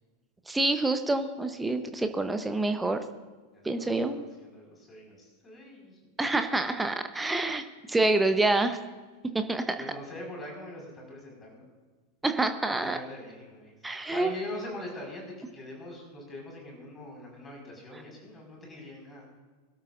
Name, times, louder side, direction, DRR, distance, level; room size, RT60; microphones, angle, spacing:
voice 1, 0.5-3.0 3.6-4.3 6.2-7.6 7.9-8.8 9.3-9.8 12.2-13.0 13.8-14.3, right 2 dB, 10° right, 8 dB, 0.9 m, -27 dB
voice 2, 3.5-6.0 9.8-11.7 12.7-19.2, left 1 dB, 20° left, -1 dB, 5.0 m, -43 dB
22.5 x 12.5 x 2.6 m, 1.4 s
figure-of-eight pair, 90°, 0 cm